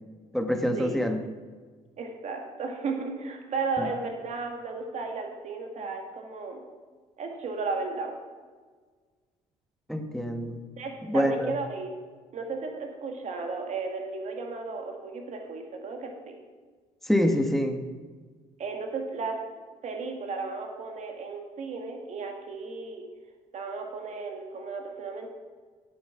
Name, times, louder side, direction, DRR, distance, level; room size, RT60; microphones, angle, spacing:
voice 1, 0.3-1.2 3.8-3.9 9.9-10.6 11.1-11.5 17.0-17.8, equal, ahead, 6 dB, 1.1 m, -26 dB
voice 2, 2.0-6.6 7.2-8.1 10.8-11.9 12.3-16.3 18.6-19.4 19.8-23.1 23.5-25.3, right 4 dB, 55° right, 3 dB, 2.0 m, -34 dB
8.7 x 8.5 x 5.9 m, 1.5 s
cardioid pair, 90°, 15 cm